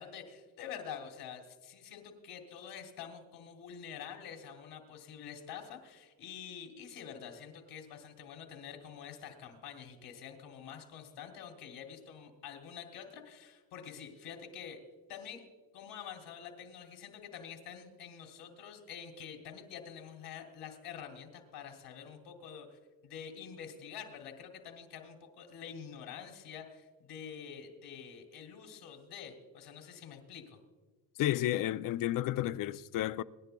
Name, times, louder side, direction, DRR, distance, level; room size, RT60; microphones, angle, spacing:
voice 1, 0.0-14.8 15.1-15.4 15.7-30.6, left 8 dB, 80° left, 2.9 m, -47 dB
voice 2, 31.2-33.2, left 13 dB, 55° left, 0.5 m, -31 dB
26.5 x 11.0 x 2.3 m
cardioid pair, 110°, 40 cm